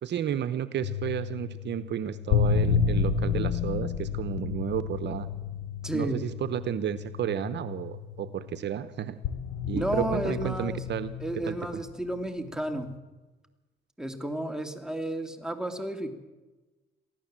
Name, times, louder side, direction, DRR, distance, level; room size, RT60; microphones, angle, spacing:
voice 1, 0.0-5.3 5.9-9.2 9.6-11.1 11.5-11.6, right 10 dB, 60° right, 13 dB, 0.9 m, -32 dB
sound 1, 0.8-8.8 9.2-11.9 12.7-13.0, left 6 dB, 90° left, 1.1 m, -31 dB
voice 2, 5.8-6.2 9.7-10.8 11.2-12.9 14.0-16.1, right 1 dB, 5° right, 6 dB, 2.5 m, -32 dB
23.0 x 15.0 x 7.5 m, 1.2 s
cardioid pair, 90°, 20 cm